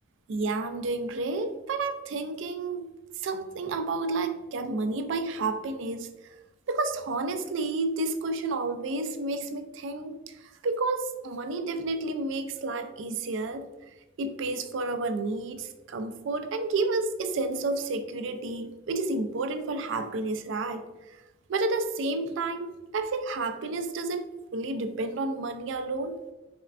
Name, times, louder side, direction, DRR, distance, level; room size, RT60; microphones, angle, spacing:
voice 1, 0.3-2.9 3.2-6.1 6.7-10.2 10.6-13.7 14.2-20.8 21.5-24.2 24.5-26.2, right 3 dB, 70° right, 9 dB, 0.4 m, -30 dB
4.2 x 3.2 x 2.4 m, 1.1 s
head